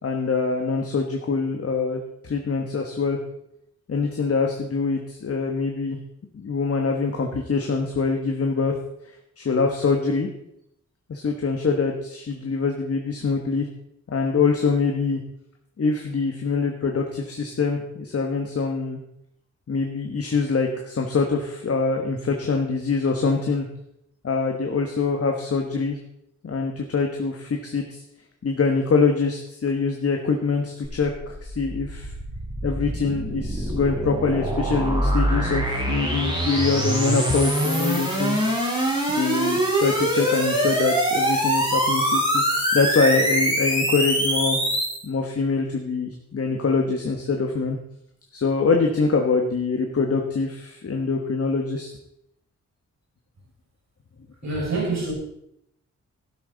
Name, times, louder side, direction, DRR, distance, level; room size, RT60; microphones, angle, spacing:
voice 1, 0.0-3.2 3.9-6.0 6.3-8.7 9.0-10.3 11.1-13.7 14.1-15.2 15.8-19.0 19.7-23.7 24.2-26.0 26.4-28.0 28.4-32.1 32.6-38.5 39.1-44.6 45.0-47.8 48.3-51.9, left 4 dB, 50° left, 3 dB, 1.3 m, -24 dB
sound 1, 30.8-45.0, right 1 dB, 15° right, 4.0 m, -24 dB
voice 2, 54.4-55.1, right 3 dB, 65° right, -2 dB, 6.1 m, -26 dB
12.5 x 11.5 x 4.0 m, 0.77 s
wide cardioid pair, 115°, 29 cm